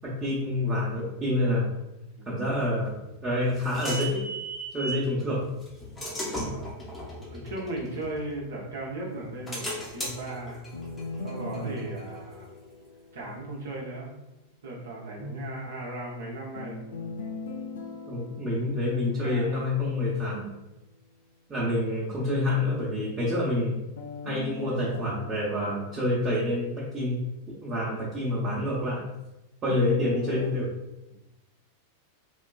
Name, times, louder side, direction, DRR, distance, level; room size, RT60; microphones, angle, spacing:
voice 1, 0.0-1.7 2.3-4.2 4.7-5.4 11.6-11.8 15.2-15.4 18.1-20.5 21.5-23.8 24.2-27.2 27.6-29.0 29.6-30.7, left 1 dB, 20° right, -7 dB, 0.7 m, -27 dB
voice 2, 2.2-2.6 5.2-5.4 6.3-6.7 7.3-10.6 11.2-12.5 13.1-14.2 14.6-16.8 18.7-19.6 20.0-20.2 22.5-22.6, right 2 dB, 65° right, -3 dB, 0.6 m, -37 dB
sound 1, 2.9-5.1 5.6-8.7 9.1-12.6, right 1 dB, 15° left, 0.7 m, -37 dB
sound 2, 10.7-13.8 16.5-19.8 24.0-27.0 29.7-30.5, left 4 dB, 65° left, 0.4 m, -40 dB
3.1 x 2.2 x 2.2 m, 0.95 s
figure-of-eight pair, 90°, 0 cm